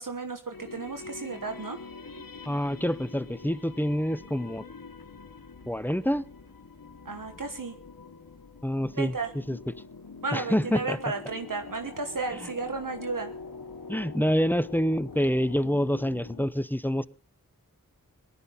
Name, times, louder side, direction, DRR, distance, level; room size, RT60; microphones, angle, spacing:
voice 1, 0.0-1.8 7.0-7.7 8.9-9.3 10.2-13.3, right 4 dB, 65° right, 6 dB, 1.4 m, -33 dB
sound 1, 0.5-16.5, left 4 dB, 75° left, 1.5 m, -45 dB
voice 2, 2.5-4.6 5.7-6.2 8.6-9.1 9.5-9.6 10.3-11.0 13.9-17.1, equal, 5° left, 16 dB, 0.7 m, -27 dB
18.5 x 12.5 x 5.5 m, 0.41 s
wide cardioid pair, 50°, 34 cm